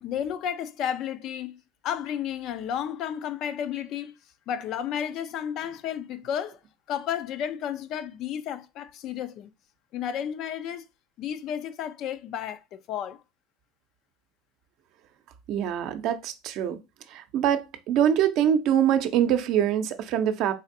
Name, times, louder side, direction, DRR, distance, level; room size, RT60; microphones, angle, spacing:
voice 1, 0.0-1.5 1.8-4.2 4.5-6.6 6.9-9.5 9.9-10.9 11.2-13.2, left 9 dB, 55° left, 0.4 m, -32 dB
voice 2, 15.5-16.8 17.1-20.5, right 9 dB, 60° right, 0.6 m, -24 dB
4.1 x 2.5 x 2.6 m
supercardioid pair, 95°, 0 cm